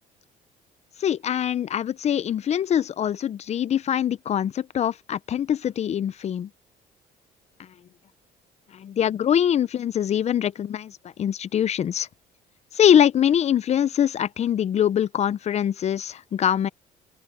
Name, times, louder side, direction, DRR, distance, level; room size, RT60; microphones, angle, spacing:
voice 1, 1.0-6.5 8.7-12.1 12.7-16.7, left 9 dB, 40° left, 0.5 m, -23 dB
open air
cardioid pair, 110°, 17 cm